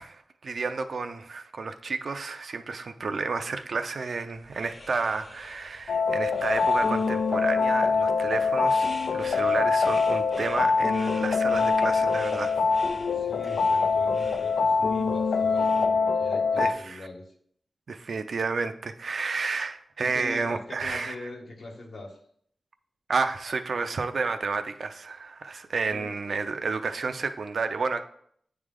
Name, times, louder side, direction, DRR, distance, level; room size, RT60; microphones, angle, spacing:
voice 1, 0.0-12.8 16.6-17.1 17.9-21.1 23.1-28.0, right 4 dB, 65° right, 8 dB, 0.5 m, -31 dB
sound 1, 4.3-15.8, left 1 dB, 40° left, 1.3 m, -47 dB
sound 2, 5.9-16.7, left 4 dB, 90° left, 0.3 m, -24 dB
voice 2, 13.1-17.3 20.0-22.2 25.8-26.1, left 2 dB, 65° left, 1 dB, 1.4 m, -42 dB
9.5 x 3.3 x 3.7 m, 0.64 s
wide cardioid pair, 90°, 0 cm